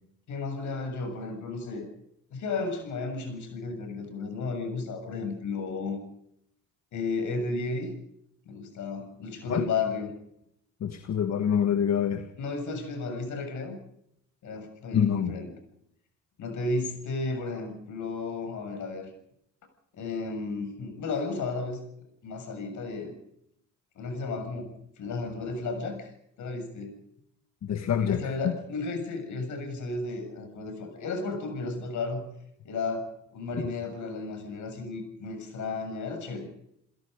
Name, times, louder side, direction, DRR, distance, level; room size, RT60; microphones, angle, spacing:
voice 1, 0.3-1.9 2.3-6.0 6.9-7.9 8.5-10.1 12.4-13.8 14.4-15.5 16.4-19.1 19.9-21.8 22.2-23.1 24.0-24.7 25.0-26.1 26.4-26.9 28.0-32.2 32.6-36.5, left 3 dB, 75° left, 6 dB, 7.2 m, -33 dB
voice 2, 10.8-12.3 14.9-15.3 27.6-28.5, left 8 dB, 60° left, 8 dB, 1.7 m, -26 dB
29.5 x 16.5 x 5.3 m, 0.74 s
cardioid pair, 90°, 30 cm